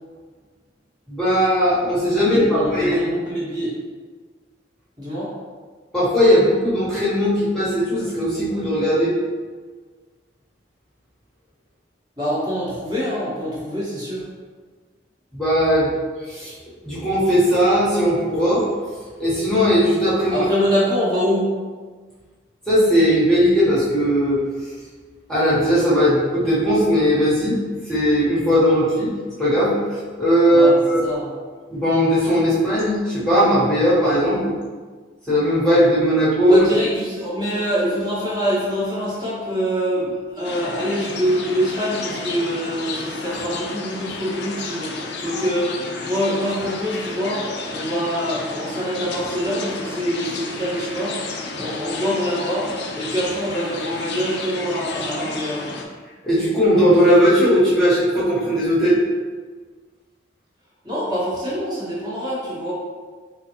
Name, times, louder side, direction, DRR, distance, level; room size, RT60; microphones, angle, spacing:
voice 1, 1.1-3.0 5.9-9.1 15.3-15.9 16.3-16.5 16.8-18.6 19.2-20.4 22.7-24.4 25.3-27.6 27.9-29.1 29.4-31.0 31.7-34.5 35.3-36.6 56.2-59.0, equal, 5° left, -11 dB, 1.0 m, -18 dB
voice 2, 2.3-3.7 5.0-5.3 12.2-14.2 20.3-21.5 30.5-31.3 36.4-44.9 45.2-45.7 46.0-51.2 51.5-55.6 60.8-62.7, equal, 20° right, -9 dB, 1.0 m, -25 dB
sound 1, 40.4-55.8, left 3 dB, 60° left, 0.4 m, -32 dB
3.9 x 3.3 x 2.8 m, 1.5 s
head